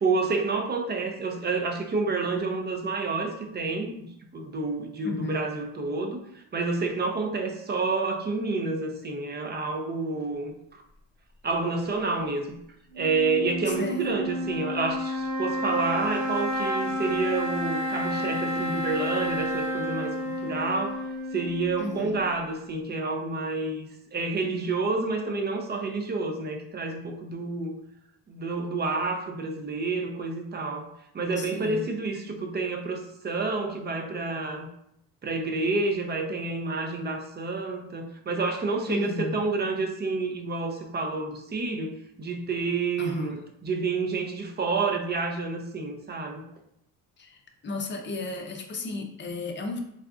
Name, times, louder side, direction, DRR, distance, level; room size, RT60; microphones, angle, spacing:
voice 1, 0.0-4.1 4.3-10.8 11.4-12.6 13.0-21.0 21.3-27.8 28.3-30.9 31.1-34.7 35.2-46.4, right 3 dB, 25° right, 4 dB, 0.4 m, -29 dB
voice 2, 5.0-5.4 13.7-14.1 21.8-22.2 31.4-31.9 38.9-39.4 43.0-43.4 47.2-47.4 47.6-49.8, left 2 dB, 25° left, 4 dB, 0.6 m, -33 dB
sound 1, 12.9-22.3, left 1 dB, 75° right, 1.1 m, -31 dB
3.6 x 2.4 x 2.3 m, 0.76 s
supercardioid pair, 85°, 43 cm